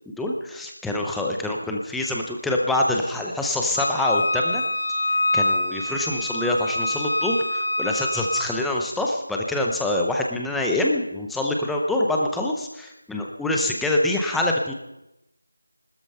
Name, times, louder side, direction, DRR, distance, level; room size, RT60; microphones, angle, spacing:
voice 1, 0.1-4.6 5.3-14.7, left 1 dB, ahead, -1 dB, 0.6 m, -25 dB
Wind instrument woodwind instrument, 3.8-8.5, left 1 dB, 35° left, 1.8 m, -25 dB
19.5 x 13.0 x 5.5 m, 0.91 s
figure-of-eight pair, 180°, 0 cm